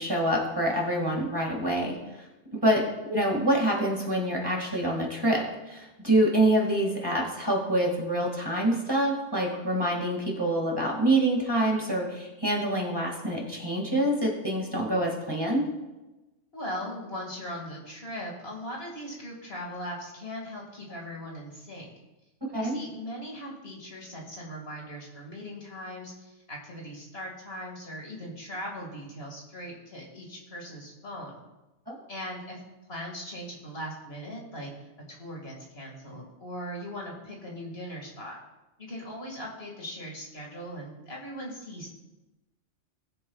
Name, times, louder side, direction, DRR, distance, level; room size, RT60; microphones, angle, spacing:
voice 1, 0.0-2.0 2.5-15.7 22.5-22.8 31.9-32.0, right 1 dB, 20° right, -1 dB, 2.1 m, -26 dB
voice 2, 16.5-21.9 22.6-31.4 32.1-32.6 32.9-34.7 35.1-38.4 38.8-41.9, equal, 60° left, -1 dB, 2.3 m, -39 dB
20.0 x 7.4 x 2.4 m, 1.1 s
omnidirectional pair, 1.2 m